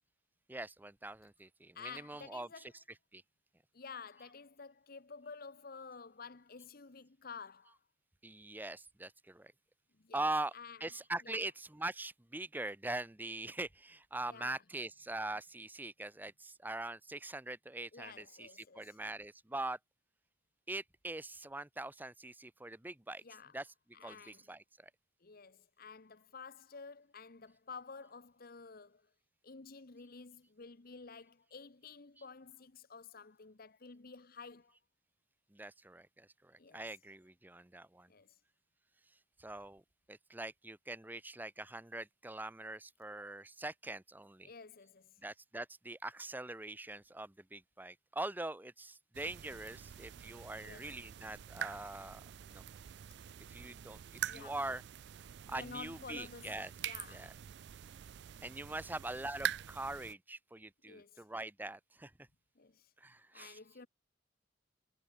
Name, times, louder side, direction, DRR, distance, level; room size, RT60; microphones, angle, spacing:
voice 1, 0.5-3.2 8.2-9.5 10.1-10.5 10.8-19.8 20.7-23.2 23.5-23.7 24.0-24.6 35.5-38.1 39.4-39.8 40.1-44.5 45.2-52.2 52.5-52.6 53.5-54.0 54.3-54.8 55.5-56.7 57.1-57.3 58.4-62.1 63.0-63.6, right 2 dB, 10° right, 0.7 m, -43 dB
voice 2, 1.7-2.8 3.7-7.8 10.0-10.9 11.2-11.4 14.2-14.6 17.9-19.0 23.2-23.6 23.9-24.5 25.2-29.1 29.4-34.8 36.6-36.9 38.1-38.4 44.4-45.2 50.6-51.0 54.3-54.6 55.5-57.4 60.8-61.2 62.6-62.9 63.3-63.9, left 5 dB, 50° left, 1.0 m, -51 dB
sound 1, 49.1-60.1, right 10 dB, 60° right, 0.4 m, -45 dB
head